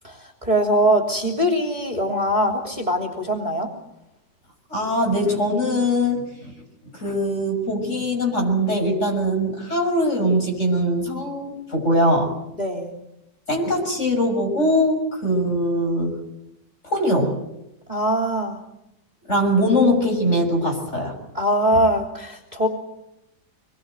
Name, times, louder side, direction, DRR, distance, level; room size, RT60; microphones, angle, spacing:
voice 1, 0.0-3.7 12.6-12.9 17.9-18.6 21.3-22.7, equal, 25° right, 2 dB, 3.2 m, -22 dB
voice 2, 4.7-6.5 6.9-12.3 13.5-16.2 16.8-17.3 19.3-21.1, equal, 40° left, 3 dB, 6.7 m, -21 dB
26.5 x 21.5 x 8.0 m, 0.89 s
omnidirectional pair, 1.9 m